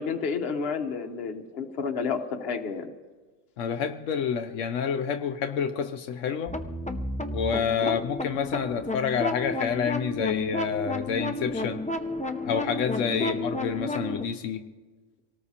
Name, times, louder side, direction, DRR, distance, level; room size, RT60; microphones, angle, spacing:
voice 1, 0.0-2.9 7.8-8.0 13.2-13.4, left 5 dB, 55° left, 6 dB, 1.1 m, -30 dB
voice 2, 3.6-6.5 7.3-11.8 12.4-14.6, left 7 dB, 85° left, 6 dB, 1.0 m, -28 dB
sound 1, 6.5-14.2, left 2 dB, 10° left, 0.4 m, -32 dB
26.5 x 18.5 x 2.8 m, 1.4 s
omnidirectional pair, 1.3 m